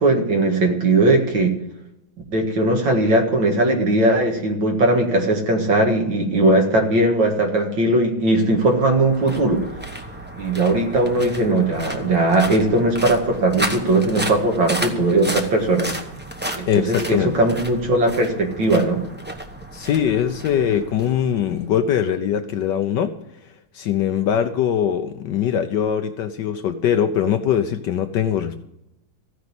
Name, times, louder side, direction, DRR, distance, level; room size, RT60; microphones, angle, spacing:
voice 1, 0.0-1.6 2.3-9.6 10.4-15.9 16.6-19.0, right 2 dB, 60° right, 2 dB, 2.5 m, -19 dB
sound 1, 8.3-21.7, right 1 dB, 15° right, 0.3 m, -33 dB
voice 2, 16.7-17.4 19.7-23.2 23.7-28.6, left 9 dB, 70° left, 8 dB, 1.2 m, -21 dB
15.0 x 5.3 x 9.7 m, 0.87 s
omnidirectional pair, 2.3 m